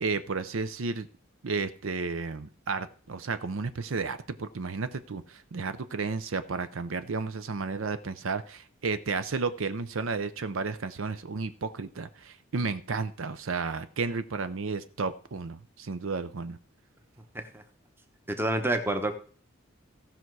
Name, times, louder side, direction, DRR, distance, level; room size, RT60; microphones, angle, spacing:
voice 1, 0.0-1.1 1.4-16.6, right 4 dB, 70° right, 12 dB, 0.6 m, -32 dB
voice 2, 18.3-19.1, right 1 dB, 10° right, 7 dB, 0.9 m, -27 dB
16.0 x 5.8 x 4.7 m, 0.42 s
head